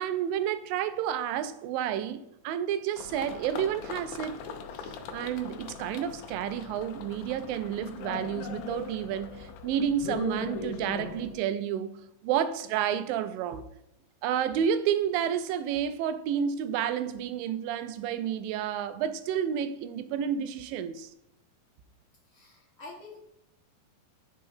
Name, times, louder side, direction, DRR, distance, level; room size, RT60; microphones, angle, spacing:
voice 1, 0.0-4.4 5.1-13.6 14.2-21.1, right 9 dB, 85° right, 2.3 m, -30 dB
sound 1, 3.0-11.4, left 5 dB, 80° left, 1.7 m, -40 dB
voice 2, 22.2-23.2, left 3 dB, 50° left, 1.6 m, -47 dB
5.1 x 4.6 x 4.9 m
omnidirectional pair, 4.0 m